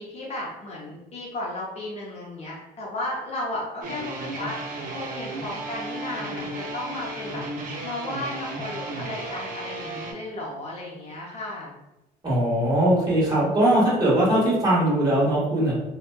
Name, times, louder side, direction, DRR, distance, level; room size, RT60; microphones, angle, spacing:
voice 1, 0.0-7.5 7.8-11.7, left 1 dB, 40° left, -4 dB, 0.7 m, -34 dB
sound 1, 3.8-10.1, right 2 dB, 55° right, 0.5 m, -34 dB
voice 2, 12.2-15.7, right 1 dB, 25° right, -7 dB, 1.4 m, -20 dB
2.6 x 2.2 x 2.2 m, 0.95 s
cardioid pair, 110°, 17 cm